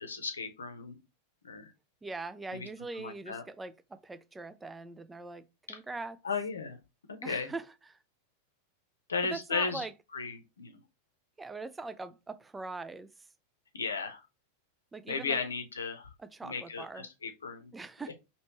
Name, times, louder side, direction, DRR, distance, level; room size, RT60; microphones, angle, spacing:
voice 1, 0.0-1.0 1.4-1.7 2.5-2.7 3.0-3.4 5.7-5.8 6.2-6.8 7.1-7.5 9.1-9.8 10.1-10.8 13.7-14.2 15.1-16.1 16.4-17.7 18.1-18.2, left 5 dB, 70° left, 0.7 m, -35 dB
voice 2, 2.0-6.2 7.2-8.0 9.3-9.9 11.4-13.3 14.9-15.4 16.2-17.1 17.7-18.1, right 3 dB, 10° right, 0.3 m, -42 dB
3.1 x 2.9 x 2.9 m
figure-of-eight pair, 90°, 0 cm